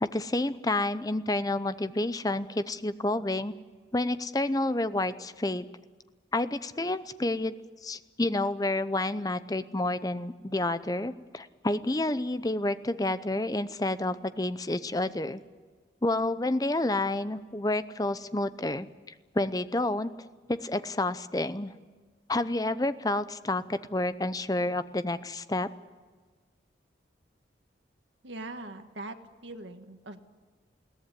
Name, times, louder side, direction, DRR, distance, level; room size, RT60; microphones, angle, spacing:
voice 1, 0.0-3.5 3.9-5.7 6.3-7.5 7.8-15.4 16.0-18.9 19.3-21.7 22.3-25.7, left 2 dB, 20° left, 13 dB, 0.6 m, -29 dB
voice 2, 28.2-29.1 29.4-30.2, right 2 dB, 80° right, 6 dB, 1.6 m, -41 dB
22.0 x 17.0 x 9.8 m, 1.4 s
head